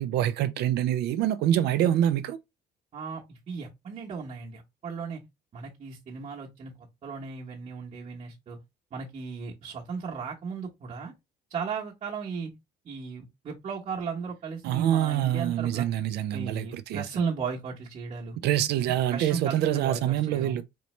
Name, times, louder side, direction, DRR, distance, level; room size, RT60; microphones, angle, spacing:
voice 1, 0.0-2.4 14.6-17.0 18.4-20.6, right 11 dB, 75° right, 0.4 m, -25 dB
voice 2, 2.9-5.2 5.5-8.6 8.9-11.1 11.5-12.5 12.8-15.9 16.3-18.4 19.1-20.6, right 5 dB, 40° right, 1.0 m, -36 dB
4.0 x 3.1 x 3.1 m
cardioid pair, 110°, 17 cm